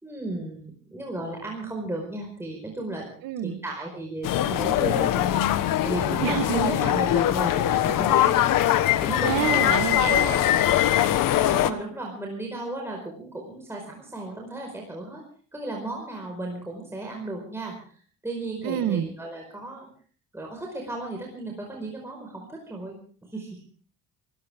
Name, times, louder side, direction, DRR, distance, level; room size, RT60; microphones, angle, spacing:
voice 1, 0.0-3.1 3.4-5.4 5.8-8.4 9.0-9.7 11.3-15.2 15.5-19.9 20.3-23.6, right 2 dB, 5° right, 0 dB, 4.9 m, -34 dB
voice 2, 3.2-3.6 6.2-6.7 9.2-10.8 18.6-19.1, right 11 dB, 70° right, 11 dB, 1.5 m, -28 dB
sound 1, 4.2-11.7, left 12 dB, 65° left, 1.3 m, -22 dB
24.0 x 16.0 x 3.6 m, 0.43 s
cardioid pair, 115°, 36 cm